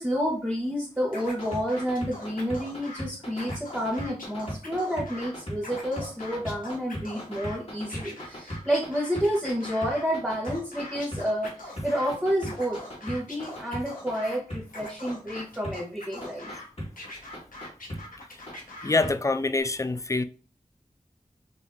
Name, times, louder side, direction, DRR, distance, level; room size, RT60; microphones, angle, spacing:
voice 1, 0.0-16.5, equal, 5° right, 1.1 m, -30 dB
Scratching (performance technique), 1.1-3.0 3.3-5.3 5.6-7.6 7.9-10.0 10.4-12.1 12.4-14.4 14.7-16.6 17.0-19.1, left 2 dB, 75° left, 1.1 m, -42 dB
sound 1, 1.3-8.9 9.1-11.5 11.8-14.1 14.5-14.6 15.1-15.7 16.2-16.9 17.3-18.0 18.5-18.6 19.0-19.1 19.6-19.7, equal, 45° left, 1.6 m, -36 dB
voice 2, 18.8-20.2, left 3 dB, 20° left, 0.3 m, -25 dB
5.3 x 2.7 x 2.8 m
wide cardioid pair, 50°, 14 cm